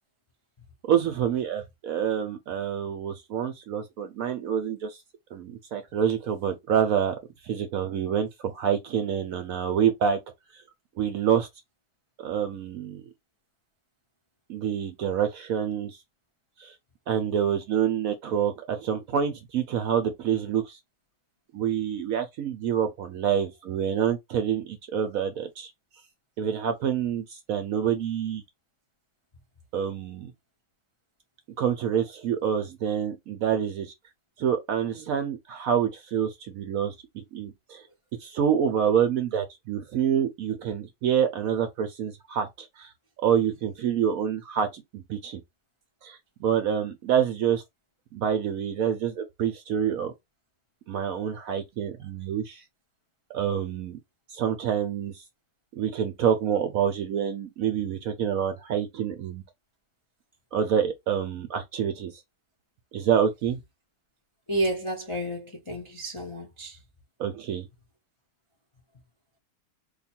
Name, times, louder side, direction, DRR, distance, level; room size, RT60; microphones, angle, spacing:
voice 1, 0.9-5.0 5.3-7.1 7.4-10.2 10.5-10.6 11.0-11.5 12.2-13.1 14.5-16.0 16.6-16.7 17.1-20.8 21.5-25.7 26.4-28.4 29.7-30.3 31.6-33.9 34.4-37.8 38.2-42.9 43.2-45.4 46.0-47.6 48.1-50.1 50.9-52.6 53.3-54.0 54.3-55.2 55.8-59.4 60.5-62.1 62.9-63.6 67.2-67.6, right 8 dB, 70° right, 0.8 m, -27 dB
voice 2, 64.5-66.8, right 1 dB, 50° left, 0.3 m, -31 dB
2.8 x 2.3 x 4.1 m
omnidirectional pair, 1.9 m